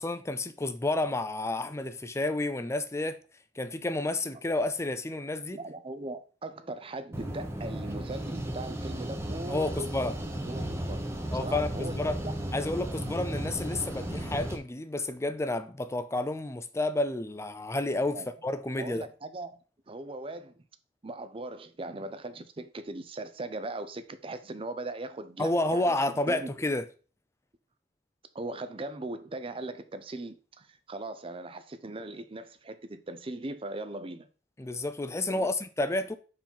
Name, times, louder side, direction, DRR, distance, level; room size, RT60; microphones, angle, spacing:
voice 1, 0.0-3.2 3.6-5.6 9.5-10.1 11.3-12.2 12.5-19.1 25.4-26.8 34.6-36.2, left 2 dB, 15° left, 0.5 m, -30 dB
voice 2, 5.5-10.0 10.5-12.3 18.1-18.3 18.8-19.6 19.9-20.6 21.0-26.0 26.3-26.5 28.3-34.3 35.3-35.5, right 2 dB, 30° right, 0.6 m, -39 dB
sound 1, 7.1-14.6, right 1 dB, 15° right, 0.9 m, -35 dB
4.8 x 4.4 x 5.4 m
head